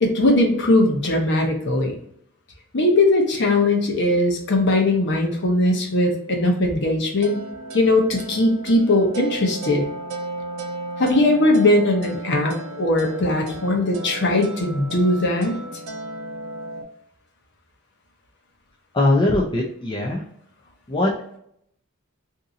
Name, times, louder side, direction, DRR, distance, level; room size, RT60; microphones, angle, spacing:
voice 1, 0.0-1.9 2.7-7.4 7.7-9.9 11.0-15.5, left 2 dB, 55° left, 2 dB, 0.8 m, -19 dB
sound 1, 7.2-16.8, right 2 dB, 90° right, 0.5 m, -35 dB
voice 2, 18.9-20.2 20.9-21.4, left 2 dB, 20° left, -3 dB, 0.4 m, -21 dB
2.7 x 2.5 x 3.8 m, 0.70 s
head